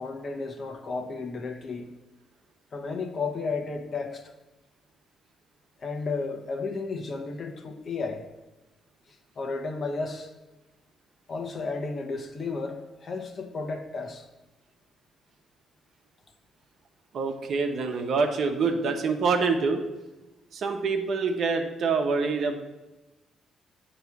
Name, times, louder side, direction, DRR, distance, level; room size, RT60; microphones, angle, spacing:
voice 1, 0.0-1.9 2.7-4.3 5.8-8.2 9.4-10.3 11.3-14.3, left 4 dB, 50° left, 5 dB, 0.9 m, -33 dB
voice 2, 17.1-19.8 20.5-22.6, right 4 dB, 65° right, 5 dB, 0.8 m, -26 dB
8.0 x 3.0 x 5.9 m, 1.1 s
cardioid pair, 75°, 0 cm